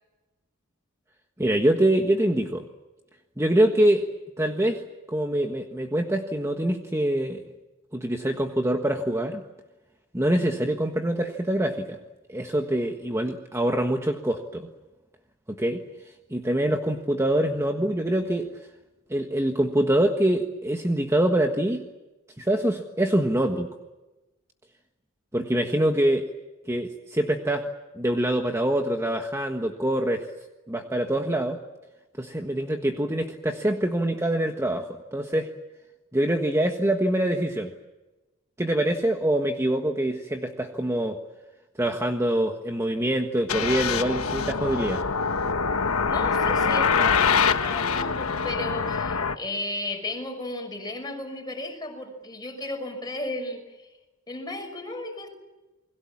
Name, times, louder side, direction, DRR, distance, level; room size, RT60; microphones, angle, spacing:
voice 1, 1.4-2.6 3.4-4.1 4.4-4.8 5.1-7.4 7.9-9.4 10.1-12.0 12.3-14.7 15.5-15.8 16.3-18.5 19.1-21.8 22.4-23.7 25.3-26.3 26.7-27.7 27.9-30.3 30.7-31.6 32.2-35.5 36.1-37.7 38.6-41.2 41.8-45.0, right 1 dB, 15° right, 4 dB, 1.5 m, -24 dB
sound 1, 43.5-49.4, left 5 dB, 85° left, 1.3 m, -24 dB
voice 2, 46.1-53.9 54.3-55.3, left 2 dB, 20° left, 4 dB, 6.0 m, -34 dB
29.5 x 21.5 x 7.3 m, 1.1 s
head